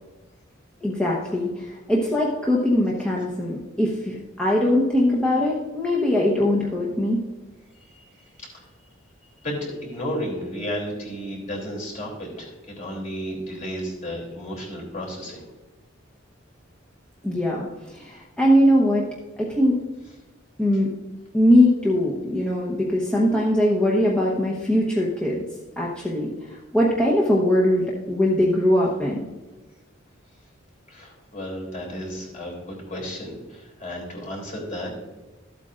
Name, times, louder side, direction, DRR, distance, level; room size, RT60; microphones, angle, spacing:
voice 1, 0.8-7.2 17.2-19.0 19.4-19.8 20.6-20.9 21.3-25.4 25.8-29.3, left 1 dB, 5° left, -5 dB, 1.0 m, -21 dB
voice 2, 7.7-8.1 8.4-8.6 9.4-15.4 30.9-35.1, equal, 35° left, -2 dB, 3.0 m, -33 dB
13.5 x 8.3 x 2.5 m, 1.1 s
head